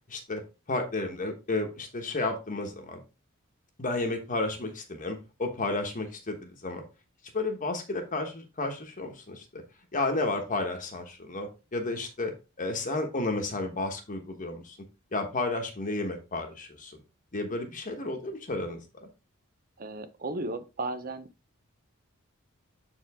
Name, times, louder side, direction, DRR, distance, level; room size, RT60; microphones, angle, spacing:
voice 1, 0.1-0.4 0.7-3.0 3.8-6.8 7.3-9.6 9.9-12.3 12.6-14.8 15.1-17.0 17.3-19.1, left 2 dB, 40° left, 1.2 m, -32 dB
voice 2, 19.8-21.3, right 2 dB, 40° right, 0.8 m, -35 dB
7.4 x 4.8 x 3.5 m
head